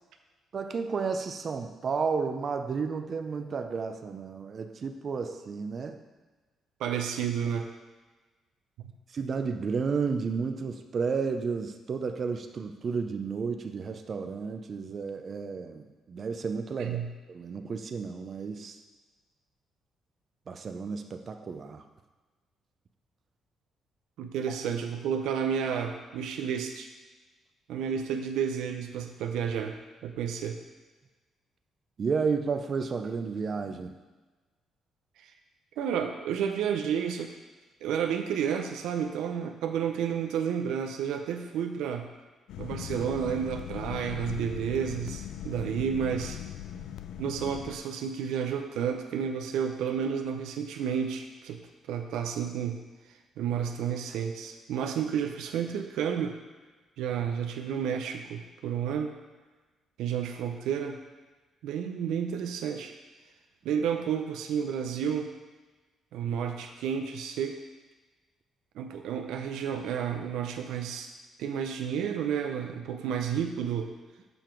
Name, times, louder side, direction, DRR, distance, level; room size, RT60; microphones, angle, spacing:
voice 1, 0.5-6.0 9.1-18.8 20.5-21.8 32.0-34.0, right 5 dB, 45° right, 6 dB, 0.6 m, -32 dB
voice 2, 6.8-7.7 8.8-8.9 16.8-17.1 24.2-26.9 27.7-29.8 30.0-30.6 35.2-35.3 35.8-37.3 37.8-42.1 42.6-46.4 47.2-51.6 51.9-52.8 53.4-56.4 57.0-59.1 60.0-61.0 61.6-62.9 63.6-65.3 66.1-67.6 68.7-71.1 71.4-73.9, right 8 dB, 90° right, 5 dB, 0.5 m, -31 dB
sound 1, 42.5-47.8, left 11 dB, 85° left, 0.4 m, -39 dB
7.0 x 5.6 x 4.5 m, 1.3 s
cardioid pair, 90°, 0 cm